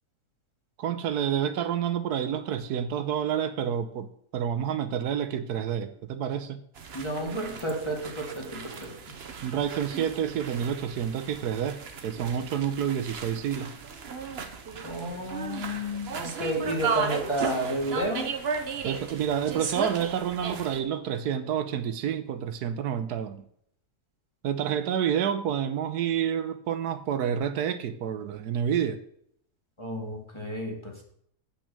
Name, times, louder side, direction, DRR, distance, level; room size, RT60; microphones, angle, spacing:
voice 1, 0.8-6.6 9.4-13.7 18.8-23.4 24.4-29.0, right 9 dB, 80° right, 11 dB, 1.3 m, -29 dB
sound 1, 6.8-20.8, right 5 dB, 45° right, 1.1 m, -35 dB
voice 2, 6.9-8.9 14.8-18.3 29.8-31.0, right 1 dB, 20° left, 0 dB, 2.1 m, -31 dB
8.5 x 6.1 x 6.7 m, 0.68 s
omnidirectional pair, 1.7 m